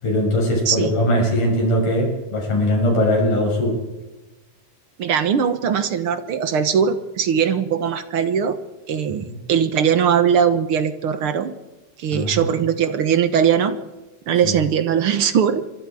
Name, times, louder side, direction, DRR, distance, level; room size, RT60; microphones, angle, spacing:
voice 1, 0.0-3.8 9.1-9.2 12.1-12.5 14.4-14.5, equal, 80° left, 0 dB, 8.7 m, -20 dB
voice 2, 5.0-8.6 8.9-11.5 12.0-13.8 14.3-15.7, right 7 dB, 60° right, 10 dB, 1.6 m, -20 dB
27.0 x 24.0 x 4.9 m, 1.1 s
omnidirectional pair, 3.6 m